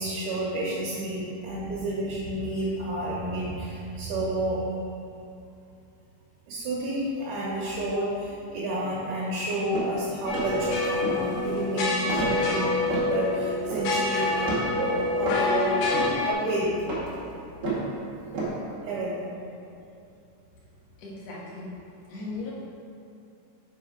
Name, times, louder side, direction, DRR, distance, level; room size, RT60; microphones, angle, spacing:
voice 1, 0.0-4.6 6.5-15.8 16.2-16.8 18.8-19.2, right 1 dB, 75° right, -5 dB, 2.4 m, -30 dB
sound 1, 9.7-10.0 10.3-10.6 11.0-11.6 12.1-13.1 13.6-14.0 14.4-14.7 15.2-15.5 15.9-16.2 16.5-17.9 18.3-18.5, right 3 dB, 45° right, 2.0 m, -31 dB
sound 2, 10.3-16.3, left 3 dB, 75° left, 2.5 m, -27 dB
voice 2, 21.0-22.5, left 3 dB, 55° left, -6 dB, 2.2 m, -38 dB
6.0 x 5.4 x 5.0 m, 2.7 s
omnidirectional pair, 4.1 m